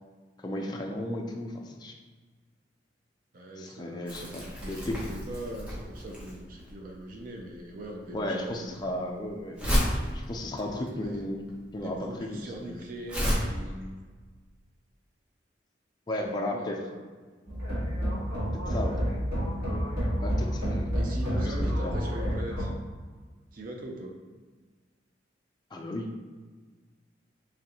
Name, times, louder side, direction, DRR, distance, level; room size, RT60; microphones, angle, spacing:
voice 1, 0.4-1.9 3.6-5.0 8.1-9.6 10.1-11.4 11.7-12.9 16.1-16.8 18.5-19.0 20.2-21.2 21.5-22.1 25.7-26.1, left 1 dB, 20° left, 1 dB, 0.4 m, -35 dB
voice 2, 3.3-8.8 10.7-11.3 11.8-14.0 16.2-17.1 20.9-22.7 23.5-24.2, right 1 dB, 50° right, 0 dB, 0.4 m, -41 dB
Crumpling crinkling, 4.1-13.3, equal, 5° right, 0.8 m, -32 dB
sound 1, 17.5-22.7, equal, 80° right, 1.5 m, -29 dB
3.8 x 3.2 x 2.9 m, 1.4 s
head